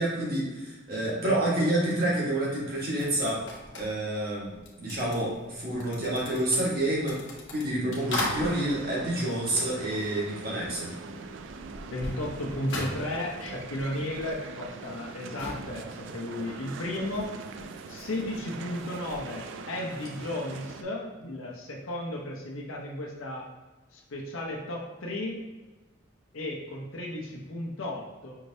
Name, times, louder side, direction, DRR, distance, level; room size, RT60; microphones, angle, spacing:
voice 1, 0.0-3.4 3.7-7.2 7.5-10.9, right 1 dB, 45° right, -5 dB, 1.4 m, -28 dB
voice 2, 0.9-1.4 11.9-17.3 17.9-23.5 23.9-25.5 26.3-28.4, left 1 dB, 90° left, -1 dB, 0.8 m, -34 dB
sound 1, 3.0-10.3 10.5-19.3, left 1 dB, 60° left, 1.0 m, -40 dB
sound 2, 8.0-20.8, right 5 dB, 65° right, 0.3 m, -42 dB
5.6 x 3.3 x 2.7 m, 1.2 s
head